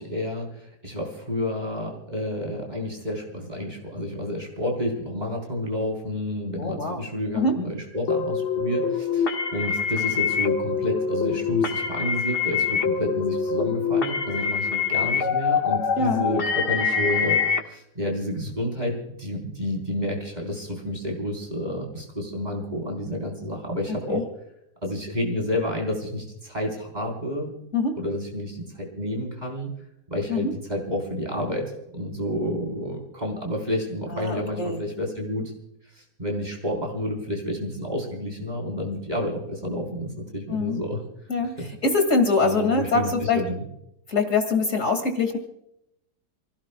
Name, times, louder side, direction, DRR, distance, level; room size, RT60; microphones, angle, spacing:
voice 1, 0.0-24.3 24.8-27.5 27.9-29.7 30.1-35.5 35.9-41.0 41.6-41.7 42.4-43.6, left 1 dB, 25° right, 0 dB, 4.4 m, -30 dB
voice 2, 6.6-7.1 7.3-7.6 16.0-16.2 24.1-24.2 27.7-28.0 30.3-30.5 34.1-34.8 40.5-40.8 41.3-41.5 41.8-43.4 44.1-45.4, left 3 dB, 50° left, 5 dB, 2.5 m, -23 dB
sound 1, 8.1-17.6, left 6 dB, 75° left, 2.1 m, -25 dB
28.0 x 17.0 x 2.3 m, 0.81 s
omnidirectional pair, 1.8 m